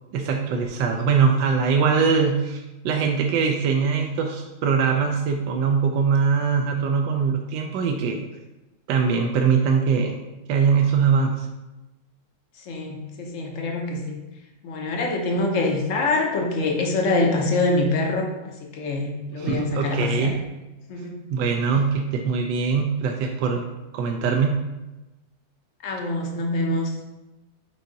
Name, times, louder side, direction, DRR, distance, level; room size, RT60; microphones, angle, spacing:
voice 1, 0.1-8.2 8.9-10.2 10.5-11.5 19.4-20.4 21.3-23.7 23.9-24.6, right 5 dB, 75° right, 2 dB, 1.1 m, -22 dB
voice 2, 12.7-14.2 14.6-20.3 20.9-21.2 25.8-26.9, left 2 dB, 55° left, 1 dB, 0.9 m, -25 dB
5.6 x 4.6 x 3.9 m, 1.0 s
omnidirectional pair, 2.3 m